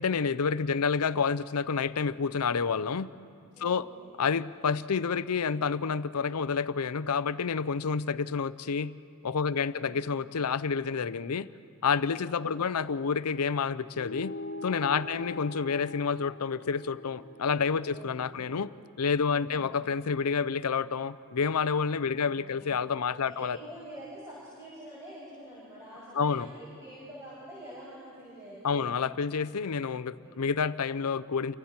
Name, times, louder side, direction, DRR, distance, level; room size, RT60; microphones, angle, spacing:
voice 1, 0.0-3.1 3.6-3.9 4.2-8.9 9.2-11.5 11.8-14.3 14.6-23.6 26.1-26.5 28.6-31.5, left 5 dB, 90° left, 15 dB, 0.6 m, -29 dB
voice 2, 3.5-4.1 9.5-10.0 12.1-12.7 14.9-15.3 17.8-18.6 19.3-19.7 22.1-22.7 23.2-29.0 30.2-30.4, right 1 dB, 15° right, -8 dB, 6.0 m, -47 dB
sound 1, 14.0-18.8, left 2 dB, 55° left, 0.8 m, -43 dB
29.5 x 25.5 x 4.4 m, 2.3 s
head